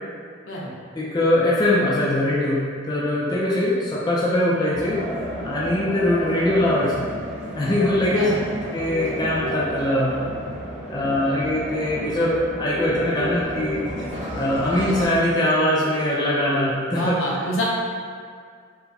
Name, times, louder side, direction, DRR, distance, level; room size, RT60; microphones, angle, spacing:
voice 1, 0.9-5.0 5.4-7.1 7.6-8.3 8.7-10.2 10.9-13.9 14.4-17.2, left 1 dB, 20° left, -7 dB, 0.3 m, -22 dB
sound 1, 4.7-15.1, equal, 40° right, 0.8 m, -32 dB
voice 2, 8.1-8.4 14.1-14.2 16.9-17.6, equal, 70° left, -5 dB, 0.7 m, -27 dB
4.5 x 2.1 x 2.6 m, 2.1 s
head